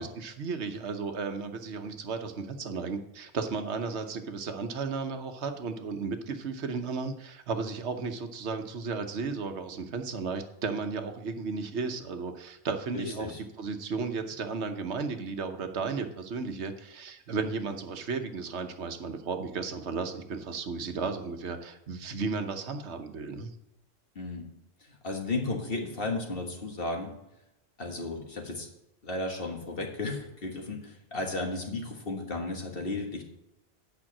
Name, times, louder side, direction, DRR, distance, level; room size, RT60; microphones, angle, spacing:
voice 1, 0.0-13.3 13.6-23.5, right 4 dB, 85° right, 7 dB, 1.2 m, -34 dB
voice 2, 12.9-13.4 24.2-24.5 24.8-27.1 27.8-28.7 29.0-33.2, left 2 dB, 60° left, 2 dB, 1.8 m, -34 dB
8.9 x 5.6 x 7.2 m, 0.85 s
omnidirectional pair, 1.1 m